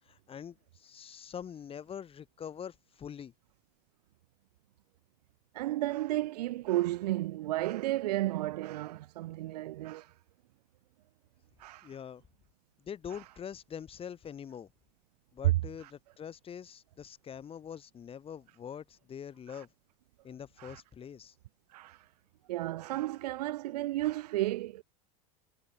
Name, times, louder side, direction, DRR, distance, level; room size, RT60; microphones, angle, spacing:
voice 1, 0.0-3.3 11.8-12.2 12.8-14.7 15.3-19.7 20.2-21.3, left 8 dB, 30° left, 2.3 m, -44 dB
voice 2, 5.5-10.1 11.6-11.9 20.6-20.8 21.7-22.0 22.5-24.8, right 16 dB, 85° right, 0.8 m, -33 dB
supercardioid pair, 110°, 20 cm